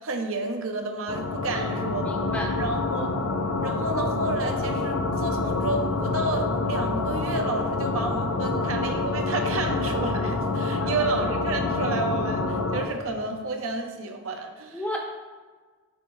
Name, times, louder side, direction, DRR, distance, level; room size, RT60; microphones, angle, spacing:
voice 1, 0.0-2.1 2.6-3.2 3.6-14.8, right 3 dB, 75° right, 4 dB, 0.7 m, -31 dB
sound 1, 1.1-12.9, left 3 dB, 70° left, 0.5 m, -27 dB
voice 2, 1.5-2.5 10.8-11.1 14.7-15.0, left 1 dB, 5° left, 0 dB, 0.6 m, -34 dB
6.8 x 4.5 x 3.1 m, 1.4 s
head